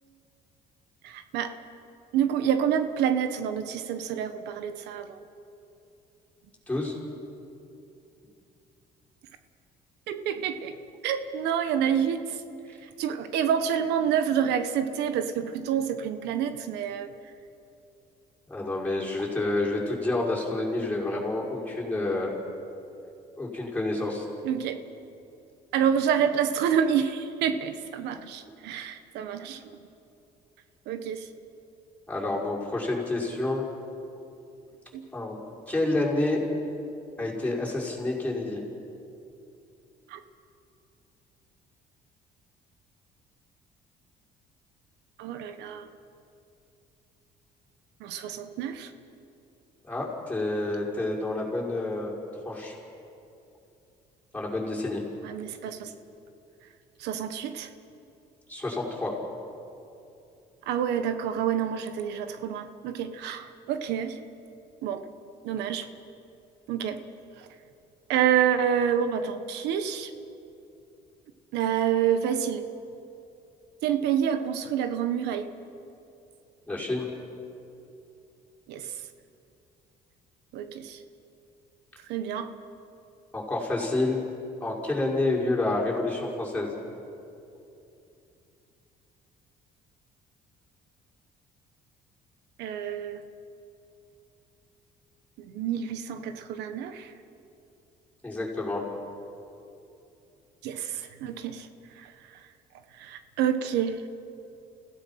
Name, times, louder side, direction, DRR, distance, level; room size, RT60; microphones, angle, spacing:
voice 1, 1.0-1.5 2.1-5.2 10.1-10.7 11.0-12.4 12.8-17.1 24.4-24.8 25.7-29.7 30.9-31.3 34.9-35.0 40.1-40.2 45.2-45.9 48.0-48.9 55.2-55.9 57.0-57.7 60.7-64.2 64.8-65.0 65.4-65.9 66.7-67.0 67.4-67.5 68.1-70.1 71.5-72.7 73.8-75.5 78.7-78.9 80.5-81.0 82.1-82.5 92.6-93.2 95.4-97.1 100.6-101.7 102.0-102.4 103.0-104.1, right 8 dB, 90° right, 9 dB, 1.3 m, -28 dB
voice 2, 6.7-7.0 18.5-22.4 23.4-24.3 32.1-33.7 35.1-35.4 35.7-36.4 37.2-38.6 49.9-52.1 52.5-52.7 54.3-55.0 58.5-59.1 76.7-77.1 83.3-84.2 84.6-86.7 98.2-98.8, left 2 dB, 10° left, -5 dB, 5.8 m, -28 dB
29.5 x 16.5 x 5.9 m, 2.7 s
cardioid pair, 110°, 17 cm